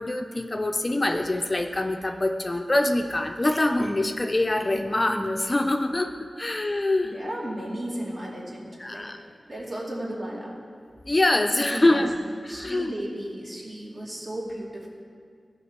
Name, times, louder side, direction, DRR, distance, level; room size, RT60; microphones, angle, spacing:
voice 1, 0.0-6.1 6.4-7.1 8.8-9.2 11.1-12.2 12.4-12.9, left 1 dB, 35° left, 5 dB, 0.5 m, -24 dB
voice 2, 7.0-10.5 11.5-12.1 12.5-14.9, right 1 dB, 40° right, -4 dB, 2.5 m, -35 dB
15.0 x 5.1 x 4.4 m, 2.2 s
wide cardioid pair, 60°, 0 cm